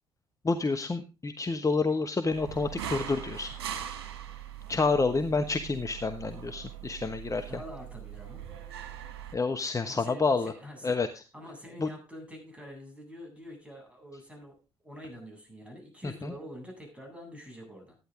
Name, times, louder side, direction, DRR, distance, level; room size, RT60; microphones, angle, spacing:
voice 1, 0.4-3.5 4.7-7.5 9.3-10.5 10.8-11.1 11.8-11.9 16.0-16.3, left 4 dB, 25° left, 7 dB, 1.2 m, -29 dB
sound 1, 2.3-9.3, right 9 dB, 80° right, 1.6 m, -41 dB
voice 2, 7.4-8.4 9.8-10.9 11.3-14.5 14.8-18.0, equal, 10° right, 2 dB, 7.7 m, -46 dB
14.0 x 9.9 x 3.8 m, 0.31 s
hypercardioid pair, 50°, 13 cm